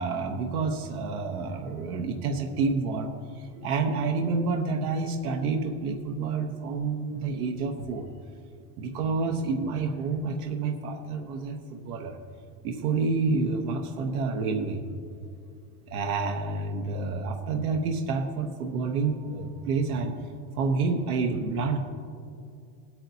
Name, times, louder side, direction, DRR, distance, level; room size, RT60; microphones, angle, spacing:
voice 1, 0.0-8.1 8.8-12.2 12.6-14.8 15.9-20.2 20.5-21.8, right 4 dB, 85° right, 3 dB, 1.1 m, -29 dB
18.0 x 8.8 x 2.7 m, 2.4 s
supercardioid pair, 130°, 44 cm